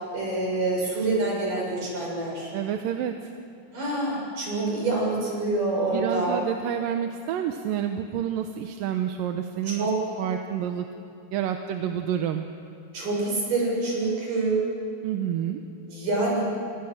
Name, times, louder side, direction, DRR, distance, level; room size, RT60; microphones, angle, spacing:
voice 1, 0.1-2.5 3.7-6.4 9.7-10.2 12.9-14.7 15.9-16.4, right 2 dB, 70° right, -3 dB, 9.0 m, -26 dB
voice 2, 2.5-3.1 5.9-9.9 10.2-10.9 11.3-12.5 15.0-15.6, right 9 dB, 85° right, 5 dB, 2.7 m, -28 dB
29.5 x 25.5 x 6.5 m, 2.7 s
omnidirectional pair, 3.9 m